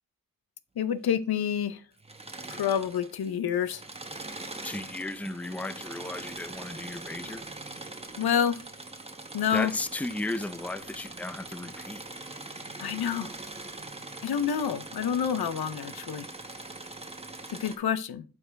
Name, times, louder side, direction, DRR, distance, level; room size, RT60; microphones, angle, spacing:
voice 1, 0.8-1.8 2.5-3.8 8.2-8.6 9.3-9.7 12.8-13.3 14.2-16.3 17.5-18.2, left 8 dB, 90° left, 0.7 m, -28 dB
Engine / Mechanisms, 2.0-3.3 3.6-17.8, right 2 dB, 15° right, 0.9 m, -42 dB
voice 2, 4.6-7.4 9.5-12.1, left 2 dB, 5° left, 0.5 m, -35 dB
8.4 x 4.4 x 3.4 m
wide cardioid pair, 80°, 36 cm